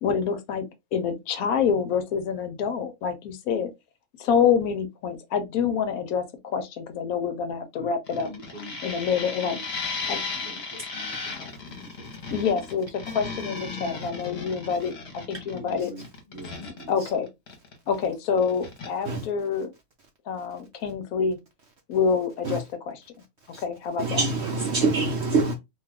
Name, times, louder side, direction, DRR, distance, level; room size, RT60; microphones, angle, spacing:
voice 1, 0.0-3.7 4.2-8.3 8.8-9.6 10.1-10.2 12.3-15.9 16.9-17.3 17.9-19.7 20.3-21.4 21.9-23.0 23.6-24.2, left 6 dB, 80° left, 1.0 m, -27 dB
voice 2, 7.7-8.9 9.3-9.7 10.0-12.1 14.0-14.6 15.5-17.2, left 1 dB, 20° left, 1.3 m, -45 dB
sound 1, 8.1-18.1 18.4-18.9, left 4 dB, 50° left, 1.1 m, -35 dB
voice 3, 24.0-25.5, right 3 dB, 65° right, 0.7 m, -25 dB
2.6 x 2.3 x 3.2 m
omnidirectional pair, 1.5 m